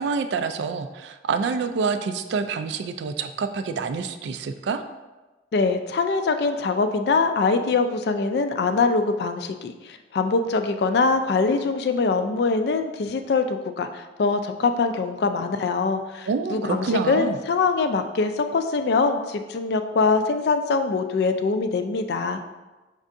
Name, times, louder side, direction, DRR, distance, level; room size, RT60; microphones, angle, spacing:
voice 1, 0.0-4.8 16.3-17.4, right 5 dB, 75° right, 9 dB, 0.3 m, -27 dB
voice 2, 5.5-22.4, left 4 dB, 65° left, 8 dB, 0.3 m, -23 dB
5.3 x 3.6 x 2.5 m, 1.2 s
head